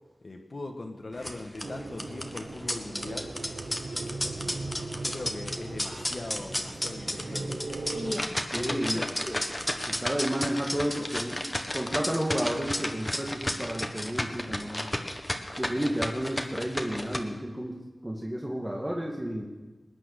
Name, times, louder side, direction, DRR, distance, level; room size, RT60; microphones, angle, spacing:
voice 1, 0.2-3.3 4.3-7.6 8.6-9.1, left 2 dB, 60° left, 3 dB, 1.4 m, -40 dB
sound 1, 1.1-17.2, left 1 dB, 15° left, 1.4 m, -33 dB
sound 2, 1.6-8.2, right 3 dB, 70° right, 1.0 m, -38 dB
voice 2, 8.5-9.0 9.3-9.4 9.9-14.9 15.6-19.4, right 1 dB, 20° right, -1 dB, 1.9 m, -32 dB
20.5 x 9.8 x 6.6 m, 1.2 s
wide cardioid pair, 60°, 0 cm